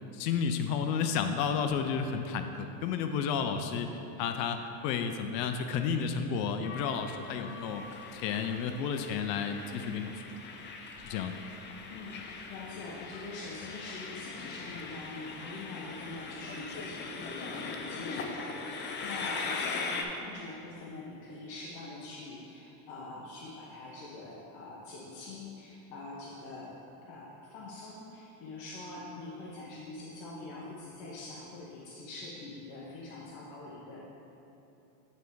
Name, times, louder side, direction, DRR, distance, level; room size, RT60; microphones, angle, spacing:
voice 1, 0.1-3.9 4.2-4.6 4.8-7.8 8.1-10.2 11.0-11.4, left 6 dB, 80° left, 7 dB, 0.6 m, -31 dB
Train, 6.6-20.0, left 4 dB, 25° left, 0.4 m, -40 dB
voice 2, 11.9-26.8 27.1-34.0, left 2 dB, 60° left, -4 dB, 1.1 m, -44 dB
9.2 x 3.5 x 4.6 m, 2.9 s
supercardioid pair, 115°, 48 cm